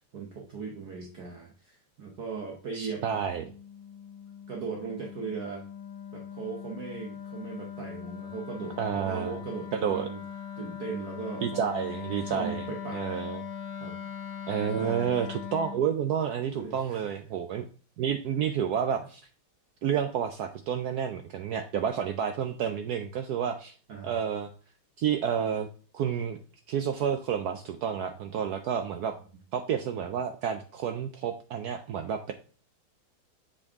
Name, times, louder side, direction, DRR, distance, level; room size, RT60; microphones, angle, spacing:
voice 1, 0.1-3.0 4.5-5.6 6.1-10.2 10.6-11.8 12.3-13.0 13.8-14.0 14.7-15.2 16.5-17.1 23.9-24.1, right 5 dB, 55° right, 0 dB, 1.3 m, -38 dB
voice 2, 2.7-3.4 8.8-9.4 9.7-10.1 11.4-12.7 12.9-13.4 14.5-17.7 18.0-19.2 19.8-23.7 24.0-24.5 25.0-25.7 25.9-26.4 26.7-29.1 29.5-32.3, right 8 dB, 85° right, 7 dB, 0.8 m, -30 dB
Wind instrument woodwind instrument, 2.9-15.9, left 8 dB, 75° left, 1.5 m, -40 dB
7.1 x 5.2 x 3.5 m, 0.39 s
omnidirectional pair, 2.2 m